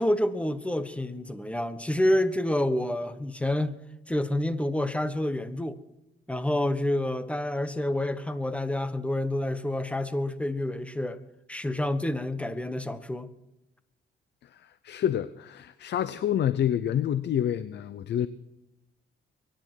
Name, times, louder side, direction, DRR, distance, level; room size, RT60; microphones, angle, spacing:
voice 1, 0.0-3.7 4.1-5.8 6.3-11.2 11.5-13.3, left 1 dB, 5° left, 1.1 m, -28 dB
voice 2, 14.8-18.3, left 10 dB, 60° left, 0.6 m, -27 dB
23.5 x 10.5 x 4.6 m
cardioid pair, 90°, 20 cm